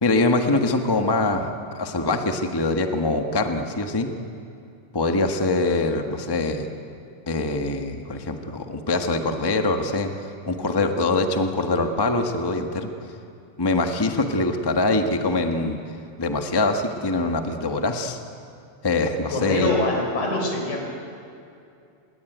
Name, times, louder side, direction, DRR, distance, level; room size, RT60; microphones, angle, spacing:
voice 1, 0.0-4.1 4.9-6.7 7.3-12.9 13.6-15.8 16.2-18.2 18.8-19.7, left 2 dB, 25° left, 5 dB, 0.5 m, -23 dB
voice 2, 19.3-20.9, left 2 dB, 75° left, 1 dB, 6.3 m, -24 dB
26.0 x 21.5 x 9.3 m, 2.5 s
omnidirectional pair, 3.4 m